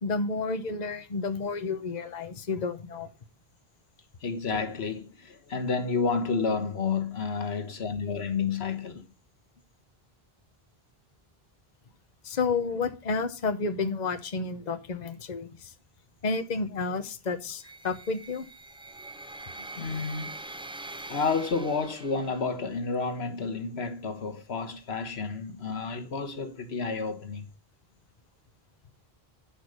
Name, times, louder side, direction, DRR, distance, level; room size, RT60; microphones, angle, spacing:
voice 1, 0.0-3.1 12.2-15.7 16.2-18.5, left 4 dB, 45° left, 1.0 m, -31 dB
voice 2, 4.2-9.0 19.6-20.4 21.1-27.5, left 4 dB, 85° left, 1.5 m, -30 dB
sound 1, 17.6-22.7, right 2 dB, 5° right, 0.5 m, -43 dB
10.5 x 5.5 x 6.4 m
omnidirectional pair, 1.0 m